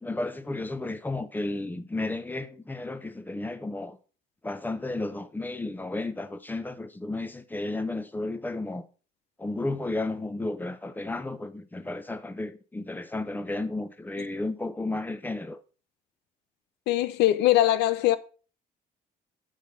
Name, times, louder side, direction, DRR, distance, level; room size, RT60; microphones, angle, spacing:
voice 1, 0.0-4.0 4.4-8.8 9.4-15.6, left 2 dB, 10° left, 0.9 m, -33 dB
voice 2, 16.9-18.2, left 14 dB, 85° left, 0.8 m, -21 dB
6.4 x 5.5 x 6.3 m
cardioid pair, 110°, 17 cm